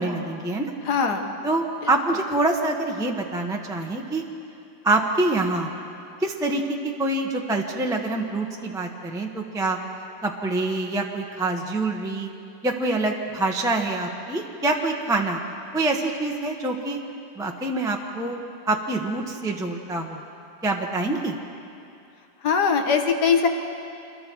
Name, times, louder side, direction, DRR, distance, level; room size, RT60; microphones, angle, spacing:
voice 1, 0.0-0.7 1.4-4.2 4.8-5.7 6.2-6.6 7.0-9.8 10.2-12.3 12.6-15.4 15.7-17.0 17.4-18.4 18.7-20.2 20.6-21.3, right 2 dB, ahead, 1 dB, 0.9 m, -25 dB
voice 2, 0.8-1.3 1.8-1.9 22.4-23.5, left 6 dB, 60° left, 5 dB, 1.9 m, -21 dB
27.0 x 21.5 x 4.6 m, 2.6 s
omnidirectional pair, 2.0 m